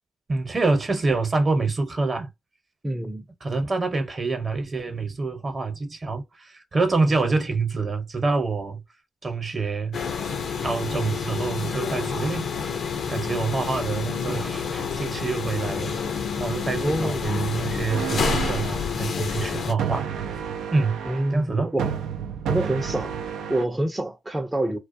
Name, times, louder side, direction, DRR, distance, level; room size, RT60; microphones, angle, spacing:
voice 1, 0.3-2.3 3.4-8.8 9.2-10.0 10.6-12.5 13.1-16.0 16.4-20.1 20.7-21.0 21.3-21.7, right 3 dB, 40° right, 0.9 m, -26 dB
voice 2, 2.8-3.3 16.8-17.4 21.1-21.9 22.5-24.8, right 1 dB, 15° right, 0.5 m, -27 dB
sound 1, 9.9-19.7, left 5 dB, 65° left, 0.5 m, -29 dB
sound 2, 17.9-18.8 19.8-21.4 21.8-23.6, right 8 dB, 85° right, 0.4 m, -30 dB
2.3 x 2.2 x 2.6 m
cardioid pair, 70°, 0 cm